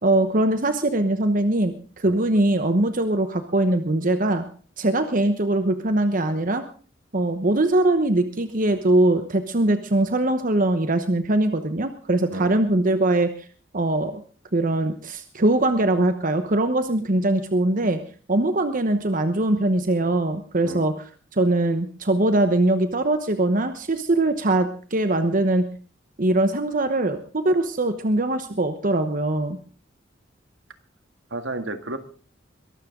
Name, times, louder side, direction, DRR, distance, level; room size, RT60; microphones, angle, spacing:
voice 1, 0.0-4.4 4.8-6.6 7.1-13.5 13.7-14.2 14.5-18.0 18.3-20.9 21.3-25.6 26.2-29.6, right 2 dB, 45° right, 9 dB, 1.1 m, -22 dB
voice 2, 31.3-32.0, right 2 dB, 75° right, 9 dB, 1.8 m, -32 dB
22.0 x 13.0 x 3.8 m, 0.40 s
head